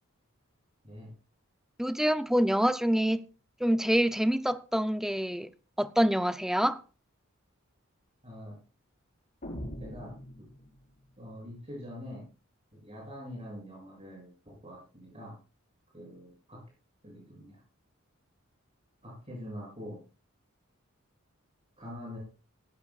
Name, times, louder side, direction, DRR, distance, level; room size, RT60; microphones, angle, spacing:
voice 1, 1.8-3.3 3.6-5.5 5.8-6.8, equal, ahead, 0.5 m, -26 dB
voice 2, 8.2-8.6 9.8-10.2 11.2-12.2 12.7-15.4 15.9-16.6 17.0-17.6 19.0-20.0 21.8-22.2, equal, 30° right, 7.8 m, -44 dB
sound 1, 9.4-11.0, equal, 40° left, 5.2 m, -42 dB
17.5 x 15.0 x 2.4 m
head